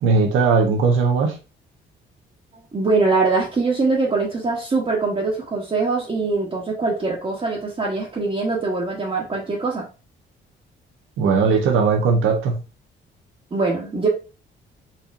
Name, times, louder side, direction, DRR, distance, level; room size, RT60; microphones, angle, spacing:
voice 1, 0.0-1.4 11.2-12.6, right 4 dB, 85° right, 2 dB, 0.8 m, -18 dB
voice 2, 2.7-9.9 13.5-14.1, right 3 dB, 30° right, -4 dB, 0.9 m, -22 dB
4.1 x 2.8 x 2.5 m, 0.33 s
cardioid pair, 90°, 20 cm